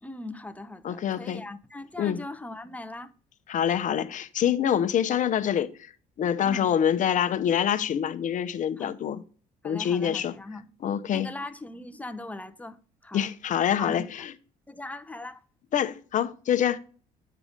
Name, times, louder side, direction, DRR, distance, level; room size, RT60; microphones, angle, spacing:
voice 1, 0.0-3.1 6.4-6.7 8.8-9.0 9.6-10.7 11.1-12.8 13.0-13.3 13.8-14.1 14.7-15.4, left 2 dB, 10° left, 0.7 m, -39 dB
voice 2, 0.8-1.4 2.0-2.2 3.5-5.9 6.2-9.2 9.6-10.3 10.8-11.3 13.1-14.3 15.7-16.8, left 9 dB, 50° left, 0.8 m, -26 dB
8.5 x 4.9 x 5.0 m
cardioid pair, 110°, 17 cm